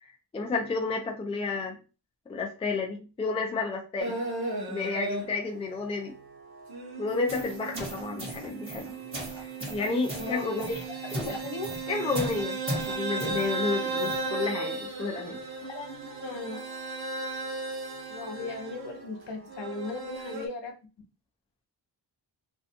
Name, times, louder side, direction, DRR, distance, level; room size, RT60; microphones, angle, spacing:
voice 1, 0.0-1.8 2.3-4.2 4.7-6.1 7.0-9.0 9.7-10.8 11.1-11.3 11.9-12.6 12.9-15.4, left 3 dB, 15° left, 1 dB, 0.3 m, -31 dB
sound 1, 4.0-5.5 5.9-20.5, right 3 dB, 55° right, 0.7 m, -36 dB
sound 2, 7.1-14.3, equal, 30° right, 1.2 m, -38 dB
voice 2, 10.1-11.0 11.2-11.7 15.6-16.7 18.1-20.7, left 3 dB, 70° left, 4 dB, 0.7 m, -37 dB
2.5 x 2.2 x 2.7 m, 0.33 s
wide cardioid pair, 155°, 45 cm